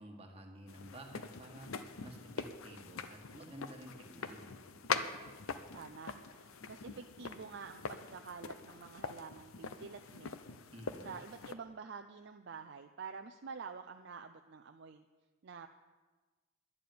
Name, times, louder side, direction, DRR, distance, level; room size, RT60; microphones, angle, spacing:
voice 1, 0.0-4.4 10.7-11.2, right 1 dB, 30° right, 2 dB, 1.5 m, -52 dB
sound 1, 0.7-11.5, left 5 dB, 80° left, 0.7 m, -43 dB
voice 2, 5.7-10.4 11.0-15.0 15.4-15.7, right 5 dB, 55° right, 5 dB, 0.5 m, -48 dB
11.0 x 6.9 x 9.4 m, 1.3 s
head